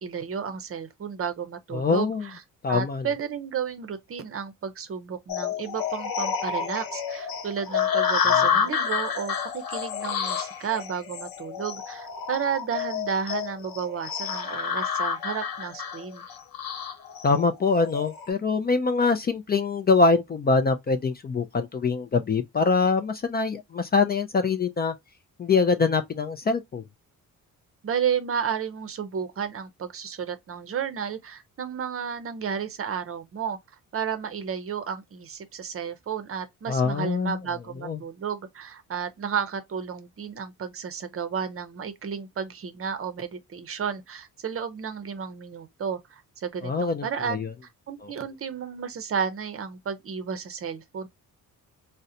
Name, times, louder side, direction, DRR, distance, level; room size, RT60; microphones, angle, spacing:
voice 1, 0.0-2.4 2.7-16.2 27.8-33.6 33.9-47.5 47.9-51.1, right 7 dB, 40° right, 0.6 m, -32 dB
voice 2, 1.7-2.2 2.6-3.1 17.2-24.9 25.4-26.8 36.7-37.4 37.8-38.0 46.6-47.5 48.0-48.1, left 4 dB, 30° left, 0.4 m, -24 dB
sound 1, 5.3-18.3, left 7 dB, 85° left, 0.9 m, -29 dB
3.8 x 2.1 x 2.7 m
cardioid pair, 140°, 34 cm